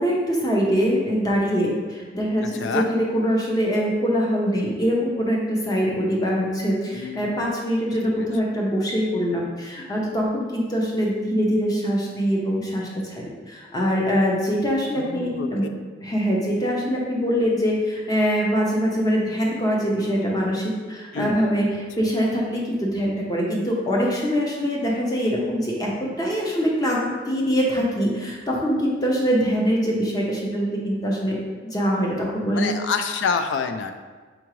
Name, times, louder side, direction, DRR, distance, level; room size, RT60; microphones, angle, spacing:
voice 1, 0.0-15.7 16.0-31.4 31.6-32.7, equal, 20° left, -3 dB, 0.7 m, -23 dB
voice 2, 2.4-2.9 6.9-7.4 8.1-8.3 15.0-15.5 21.1-21.4 21.7-21.8 32.5-33.9, left 5 dB, 80° left, 7 dB, 0.3 m, -27 dB
4.8 x 3.5 x 3.1 m, 1.4 s
head